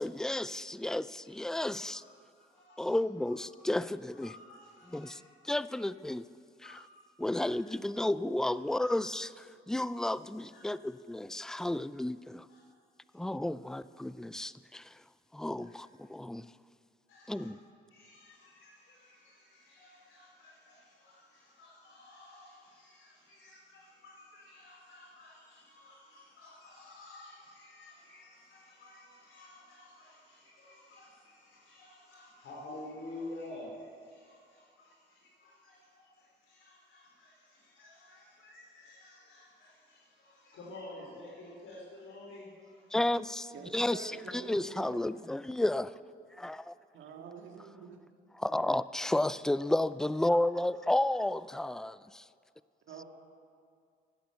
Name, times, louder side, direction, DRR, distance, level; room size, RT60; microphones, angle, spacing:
voice 1, 0.0-2.0 2.8-4.3 4.9-6.2 6.6-6.8 7.2-12.5 13.1-15.0 15.3-16.5 17.3-17.6 42.9-46.0 46.3-46.7 48.4-52.2, left 1 dB, 5° left, 16 dB, 0.4 m, -32 dB
voice 2, 2.5-3.0 3.2-3.3 4.2-5.1 6.6-6.8 7.3-7.4 8.8-9.0 10.5-10.6 12.5-12.6 17.1-17.5 17.9-42.9, left 2 dB, 85° left, -4 dB, 4.1 m, -51 dB
voice 3, 43.5-45.1 46.9-48.0 52.9-53.0, right 5 dB, 80° right, 3 dB, 2.0 m, -46 dB
15.5 x 11.5 x 7.0 m, 2.2 s
cardioid pair, 90°, 20 cm